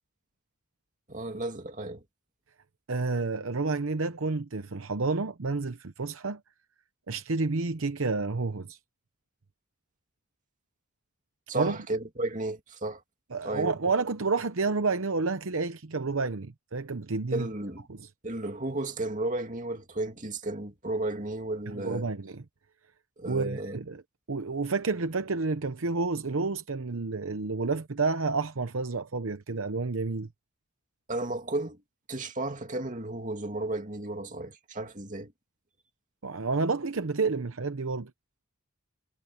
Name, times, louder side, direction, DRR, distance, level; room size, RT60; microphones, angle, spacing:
voice 1, 1.1-2.0 11.5-13.0 13.4-13.7 17.3-17.9 18.2-22.1 23.2-23.8 31.1-31.8 32.1-35.3, right 2 dB, 35° right, 2.6 m, -33 dB
voice 2, 2.9-6.4 7.1-8.8 11.5-11.8 13.3-17.5 17.9-18.0 21.7-22.4 23.3-24.0 24.3-30.3 36.2-38.1, right 4 dB, 65° right, 0.8 m, -30 dB
head